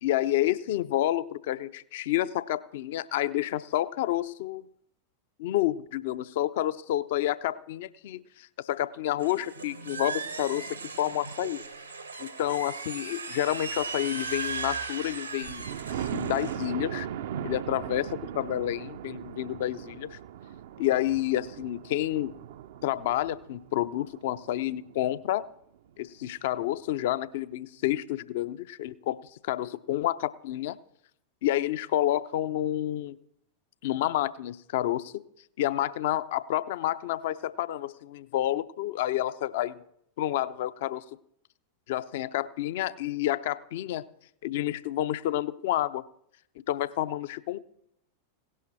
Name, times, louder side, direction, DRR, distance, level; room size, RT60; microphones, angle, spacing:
voice 1, 0.0-4.7 5.4-11.6 12.2-17.1 17.4-18.1 18.3-20.2 20.8-22.3 22.8-25.5 26.0-29.2 29.4-30.8 31.4-33.2 33.8-35.2 35.6-39.8 40.2-41.0 41.9-44.0 44.4-46.0 46.7-47.6, left 13 dB, 55° left, 16 dB, 0.5 m, -29 dB
sound 1, 9.2-16.6, right 4 dB, 85° right, 1.2 m, -37 dB
Thunder, 15.5-25.2 25.8-25.9 26.3-26.4 26.6-26.7, right 10 dB, 55° right, 0.5 m, -38 dB
17.0 x 11.0 x 4.3 m, 0.72 s
figure-of-eight pair, 90°, 0 cm